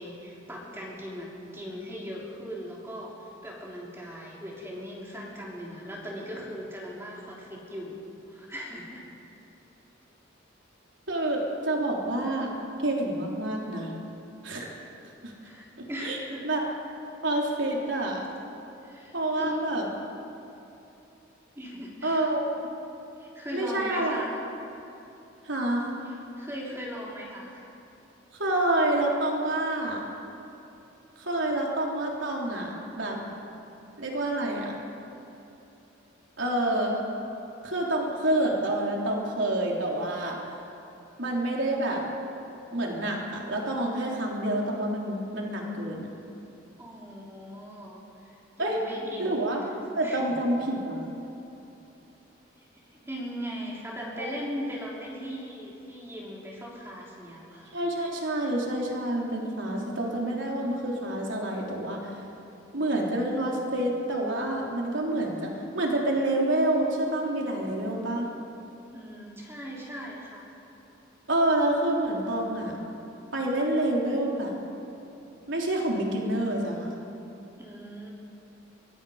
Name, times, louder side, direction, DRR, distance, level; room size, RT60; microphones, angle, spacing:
voice 1, 0.0-8.0 8.3-9.0 15.4-16.5 18.8-19.7 21.5-22.3 23.2-24.3 26.0-27.6 46.8-49.5 50.0-50.4 52.6-52.7 52.9-57.8 68.9-70.5 77.6-78.1, equal, 10° right, -4 dB, 3.2 m, -39 dB
voice 2, 11.1-12.5 12.8-13.9 14.4-14.7 15.2-15.3 16.0-16.2 16.4-16.6 17.2-18.2 19.1-19.9 22.0-22.7 23.5-24.2 25.4-26.0 28.3-30.0 31.2-33.2 34.0-34.7 36.4-37.0 37.6-40.4 41.2-42.0 42.7-46.1 48.6-48.8 49.2-49.6 49.9-51.0 57.7-62.1 62.7-68.3 71.3-72.8 73.3-74.6 75.5-76.9, right 1 dB, 65° right, -2 dB, 3.7 m, -28 dB
23.5 x 23.0 x 5.1 m, 2.9 s
head